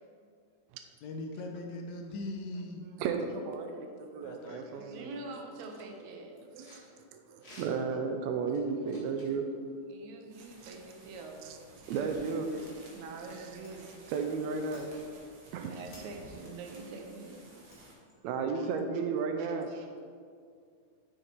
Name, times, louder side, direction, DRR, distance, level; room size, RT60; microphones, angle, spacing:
voice 1, 1.0-2.8 4.2-4.8, left 2 dB, 80° left, 2 dB, 1.5 m, -40 dB
voice 2, 3.0-5.1 6.6-6.8 7.1-9.5 11.9-12.6 14.1-14.9 15.5-15.7 18.2-19.7, right 5 dB, 90° right, 5 dB, 1.6 m, -33 dB
sound 1, 4.5-4.6 4.8-6.9 7.3-8.0 8.5-9.4 10.8-10.9 11.3-11.4 11.9-12.0 12.6-12.7 13.6-13.7 14.0-14.1 14.6-15.2 15.6-16.0 17.2-18.2, left 1 dB, 35° left, 1.1 m, -56 dB
voice 3, 4.5-6.5 9.9-11.5 12.9-13.9 15.6-17.4 18.1-18.3 18.5-18.7 19.4-19.9, right 3 dB, 75° right, 2 dB, 1.8 m, -45 dB
sound 2, 10.2-17.9, right 1 dB, 55° right, 1.9 m, -54 dB
6.5 x 6.0 x 4.4 m, 2.2 s
omnidirectional pair, 3.7 m